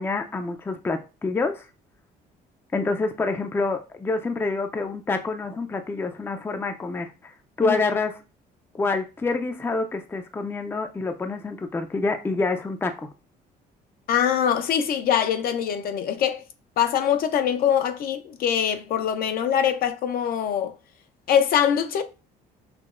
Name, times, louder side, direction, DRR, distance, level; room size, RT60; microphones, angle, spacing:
voice 1, 0.0-1.7 2.7-7.3 7.6-8.1 8.7-13.1, left 3 dB, 15° left, 0.4 m, -27 dB
voice 2, 14.1-16.4 16.8-20.7 21.3-22.0, left 9 dB, 60° left, 0.6 m, -23 dB
5.7 x 2.0 x 2.4 m
cardioid pair, 110°, 17 cm